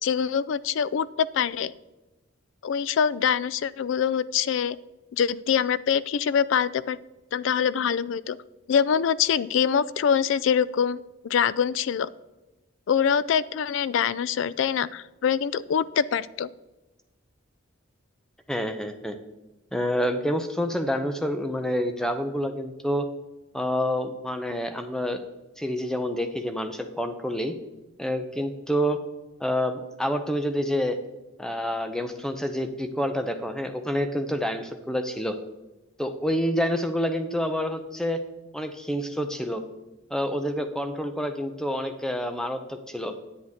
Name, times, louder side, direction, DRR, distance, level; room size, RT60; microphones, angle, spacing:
voice 1, 0.0-1.7 2.6-4.8 5.1-7.0 7.3-8.4 8.7-12.1 12.9-16.5, left 7 dB, 65° left, 18 dB, 0.3 m, -24 dB
voice 2, 18.5-19.2 19.7-23.1 23.5-25.2 25.6-27.5 28.0-29.0 29.4-31.0 31.4-35.4 36.0-38.2 38.5-39.6 40.1-43.1, equal, 5° left, 7 dB, 0.6 m, -28 dB
10.5 x 8.0 x 3.6 m, 1.1 s
head